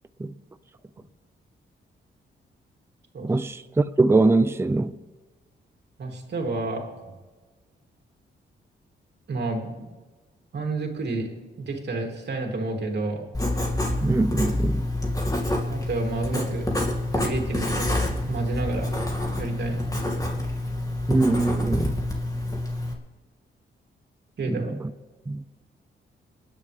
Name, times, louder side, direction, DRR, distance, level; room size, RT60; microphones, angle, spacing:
voice 1, 3.2-4.9 14.0-14.9 21.1-22.0 24.5-24.8 25.3-25.4, right 2 dB, 15° right, 0.5 m, -22 dB
voice 2, 6.0-7.1 9.3-9.9 10.5-11.3 11.6-13.3 15.7-16.7 17.1-19.1 19.4-20.1 24.4-24.7, right 3 dB, 60° right, 3.3 m, -30 dB
Writing, 13.3-22.9, left 1 dB, 15° left, 2.7 m, -27 dB
28.5 x 10.0 x 3.6 m
cardioid pair, 100°, 20 cm